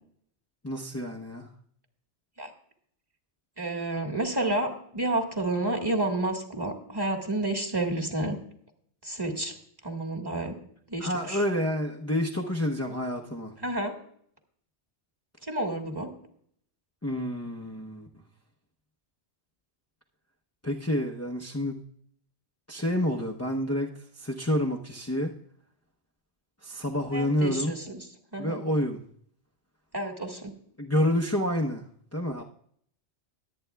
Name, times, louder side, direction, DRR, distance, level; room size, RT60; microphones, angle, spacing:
voice 1, 0.6-1.5 11.0-13.5 17.0-18.1 20.6-21.8 22.7-23.9 24.2-25.3 26.6-27.7 28.4-29.0 30.8-31.8 32.1-32.4, left 1 dB, 15° left, -2 dB, 0.7 m, -28 dB
voice 2, 3.6-8.4 9.0-9.5 9.8-10.5 10.9-11.4 13.6-13.9 15.5-16.1 27.1-28.1 28.3-28.6 29.9-30.5, right 1 dB, 20° right, 2 dB, 1.5 m, -30 dB
22.0 x 8.6 x 2.3 m, 0.64 s
omnidirectional pair, 1.2 m